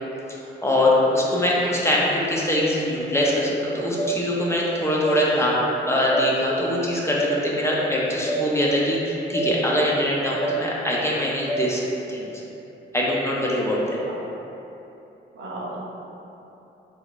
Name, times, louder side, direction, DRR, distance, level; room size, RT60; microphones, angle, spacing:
voice 1, 0.3-5.6 5.9-11.8 12.1-12.3 12.9-14.0, left 1 dB, 15° left, -5 dB, 0.5 m, -23 dB
sound 1, 4.0-4.1 5.0-5.2 6.1-6.3 7.2-7.3 8.3-8.4 9.3-9.5 10.4-10.6 11.5-11.6, right 2 dB, 50° left, 0.8 m, -26 dB
voice 2, 15.3-15.8, right 2 dB, 75° right, -5 dB, 0.7 m, -34 dB
3.7 x 2.3 x 2.3 m, 3.0 s
cardioid pair, 75°, 20 cm